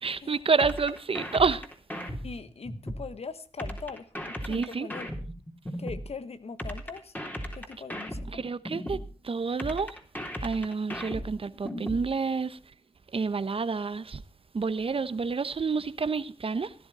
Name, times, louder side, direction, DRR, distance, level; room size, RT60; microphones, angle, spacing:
voice 1, 0.0-1.6 4.4-4.9 8.3-9.9 10.4-12.6 13.1-14.2 14.5-16.7, right 4 dB, 60° right, 1.0 m, -29 dB
sound 1, 0.6-3.1 3.6-6.1 6.6-9.1 9.6-12.1, equal, 15° left, 3.5 m, -36 dB
voice 2, 2.2-5.1 5.8-7.2 7.5-8.4, left 4 dB, 70° left, 1.3 m, -41 dB
16.5 x 11.5 x 4.2 m
cardioid pair, 55°, 11 cm